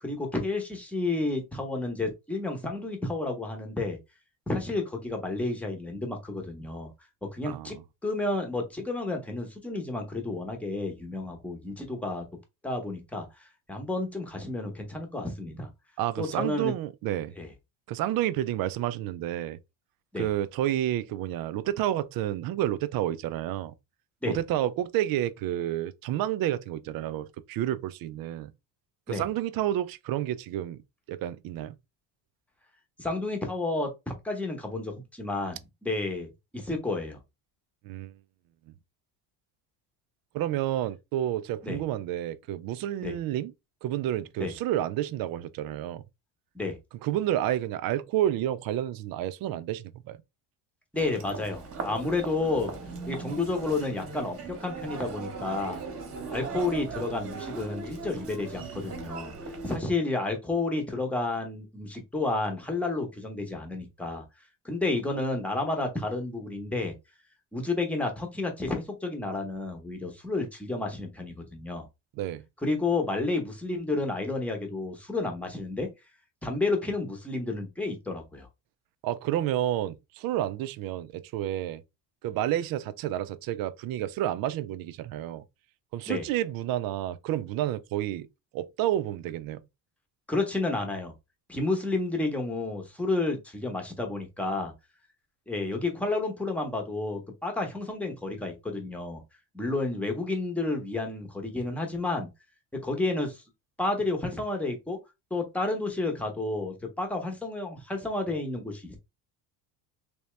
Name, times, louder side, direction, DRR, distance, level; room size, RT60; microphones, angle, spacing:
voice 1, 0.0-4.0 4.5-6.9 7.2-7.8 8.0-12.2 12.6-15.7 16.2-16.7 17.4-17.5 20.1-20.3 24.2-24.4 29.1-29.3 33.0-37.2 41.6-41.8 43.0-43.2 44.4-44.5 46.5-46.8 50.9-52.7 53.1-55.8 56.3-59.3 59.6-64.2 64.6-66.9 67.5-71.9 72.6-75.9 76.4-78.5 86.1-86.3 90.3-91.1 91.5-94.7 95.5-99.2 99.5-102.3 102.7-103.4 103.8-105.0 105.3-109.0, left 2 dB, 5° left, 0.9 m, -31 dB
voice 2, 16.0-17.3 17.9-19.6 20.2-23.7 24.3-28.5 29.1-30.8 31.1-31.8 37.8-38.1 40.3-43.5 43.8-46.0 47.0-50.2 72.2-72.5 79.0-81.8 82.2-85.4 85.9-88.3 88.5-89.6, right 12 dB, 50° right, 0.5 m, -30 dB
Human voice, 50.9-59.8, right 4 dB, 30° right, 1.2 m, -39 dB
3.5 x 2.8 x 3.1 m
cardioid pair, 125°, 45 cm